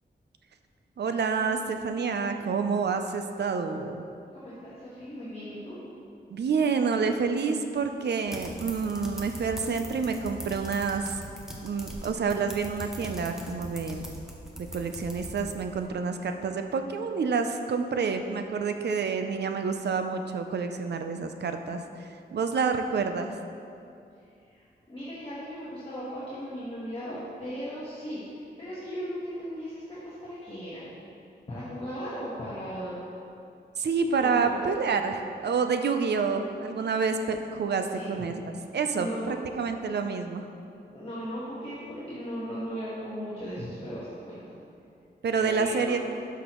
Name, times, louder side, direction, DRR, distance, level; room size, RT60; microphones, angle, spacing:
voice 1, 1.0-4.0 6.3-11.2 11.6-14.1 14.6-23.3 33.8-38.4 38.7-40.5 45.2-46.0, right 5 dB, 70° right, 7 dB, 0.5 m, -28 dB
voice 2, 4.3-5.8 24.4-24.6 24.9-30.9 31.5-33.0 34.2-34.7 37.9-38.1 38.9-39.3 40.9-44.6 45.3-46.0, equal, 30° left, -10 dB, 1.4 m, -37 dB
sound 1, 8.3-15.9, right 1 dB, 5° right, 0.8 m, -41 dB
11.5 x 6.0 x 3.0 m, 2.5 s
wide cardioid pair, 150°, 18 cm